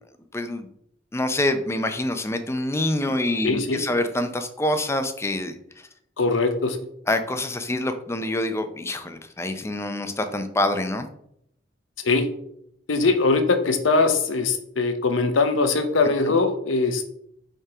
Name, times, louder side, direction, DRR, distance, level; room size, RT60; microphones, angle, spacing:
voice 1, 0.3-0.7 1.1-5.6 7.1-11.1, left 1 dB, 15° left, 8 dB, 0.5 m, -26 dB
voice 2, 3.4-3.8 6.2-6.8 12.0-12.3 12.9-17.2, left 3 dB, 80° left, 8 dB, 0.8 m, -21 dB
5.4 x 3.7 x 4.8 m, 0.72 s
head